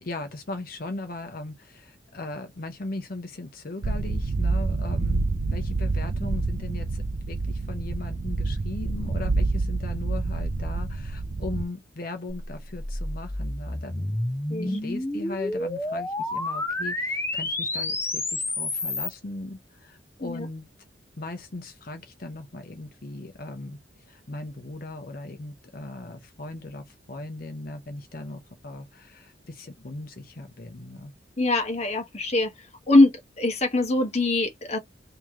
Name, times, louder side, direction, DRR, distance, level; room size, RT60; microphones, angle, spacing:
voice 1, 0.0-14.2 14.6-20.6 21.2-23.8 24.1-31.1, left 2 dB, 50° left, 0.7 m, -38 dB
sound 1, 3.8-11.6, right 3 dB, 50° right, 0.4 m, -27 dB
sound 2, 12.3-19.1, left 2 dB, 15° left, 0.7 m, -30 dB
voice 2, 31.4-32.5 32.9-34.8, left 2 dB, 35° left, 1.0 m, -22 dB
3.2 x 2.8 x 3.5 m
head